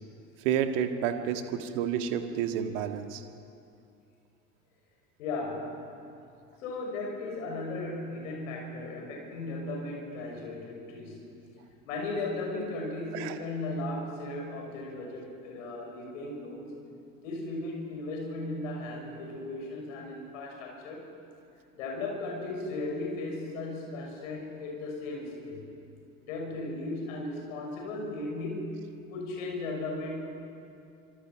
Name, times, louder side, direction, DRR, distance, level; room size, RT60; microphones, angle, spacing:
voice 1, 0.4-3.2 13.1-13.4, right 9 dB, 60° right, 7 dB, 1.9 m, -30 dB
voice 2, 5.2-5.9 6.6-11.2 11.9-16.6 17.2-21.1 21.7-25.7 26.2-30.3, left 2 dB, 65° left, 0 dB, 6.4 m, -36 dB
26.5 x 25.5 x 6.1 m, 2.6 s
figure-of-eight pair, 65°, 41 cm